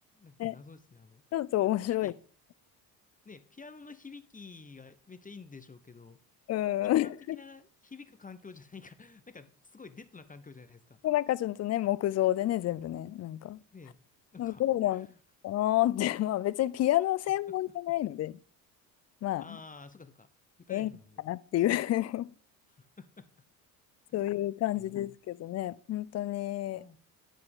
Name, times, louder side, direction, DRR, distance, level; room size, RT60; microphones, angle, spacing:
voice 1, 0.1-1.2 1.9-2.1 3.2-6.2 6.8-11.0 13.7-14.0 14.3-14.6 14.9-15.2 19.4-20.3 20.6-21.2 22.7-23.3 24.1-24.4 24.7-25.2 26.7-27.0, left 4 dB, 15° left, 0.8 m, -50 dB
voice 2, 1.3-2.1 6.5-7.4 11.0-13.6 14.4-15.1 15.4-18.4 19.2-19.4 20.7-20.9 21.3-22.3 24.1-26.8, left 14 dB, 35° left, 0.4 m, -29 dB
9.6 x 7.1 x 3.6 m
hypercardioid pair, 60°, 50 cm